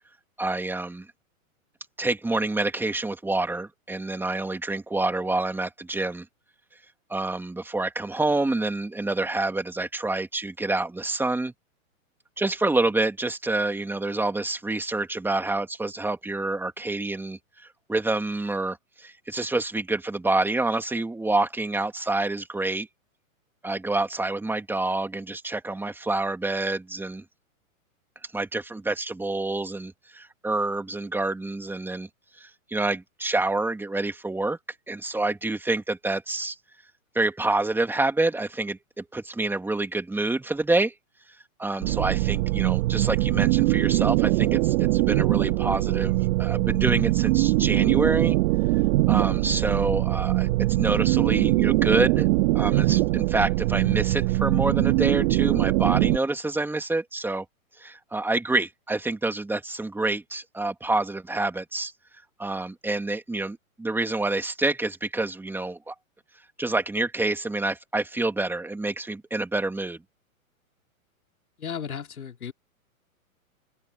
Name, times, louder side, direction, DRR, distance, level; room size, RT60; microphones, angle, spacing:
voice 1, 0.4-1.1 2.0-6.3 7.1-11.5 12.4-22.9 23.6-27.2 28.3-32.1 32.4-34.6 34.9-36.6 37.1-40.9 41.6-48.4 49.1-50.5 50.8-52.3 52.5-57.5 57.8-61.9 62.4-65.9 66.6-70.0, right 2 dB, 5° right, 2.5 m, -27 dB
sound 1, 41.8-56.2, right 20 dB, 45° right, 2.1 m, -22 dB
voice 2, 71.6-72.5, left 7 dB, 85° left, 3.2 m, -34 dB
open air
hypercardioid pair, 130°, 42 cm